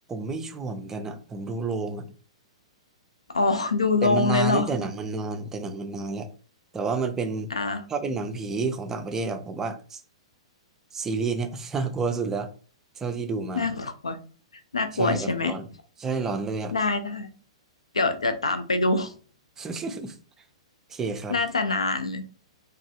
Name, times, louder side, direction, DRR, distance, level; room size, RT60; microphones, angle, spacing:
voice 1, 0.1-2.0 4.0-6.3 6.7-7.5 7.9-10.0 10.9-12.5 13.0-13.7 15.0-15.7 16.0-16.7 19.6-20.1 20.9-21.3, right 4 dB, 15° right, 0.4 m, -30 dB
voice 2, 3.3-4.7 7.5-7.8 13.5-14.2 14.7-15.5 16.7-17.3 17.9-19.1 21.3-22.2, left 3 dB, 75° left, 0.4 m, -24 dB
3.0 x 2.4 x 2.6 m
figure-of-eight pair, 105°, 3 cm